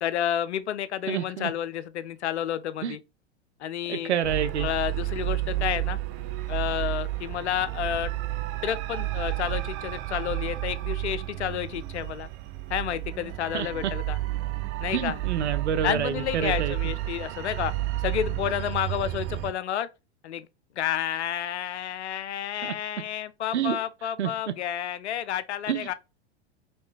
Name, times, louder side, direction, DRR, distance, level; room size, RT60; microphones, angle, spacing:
voice 1, 0.0-3.0 3.6-4.1 4.6-6.0 6.5-8.1 8.6-12.3 12.7-14.2 14.8-15.2 15.8-17.7 18.0-19.9 20.2-20.5 20.8-25.9, left 10 dB, 80° left, 0.5 m, -30 dB
voice 2, 1.1-1.5 2.8-3.0 3.9-4.7 13.5-13.9 14.9-16.9 22.6-22.7 23.5-23.8 24.2-24.3 25.7-25.9, right 9 dB, 85° right, 0.6 m, -28 dB
sound 1, 4.2-19.5, right 16 dB, 40° right, 0.5 m, -31 dB
4.3 x 3.0 x 3.3 m
hypercardioid pair, 95°, 33 cm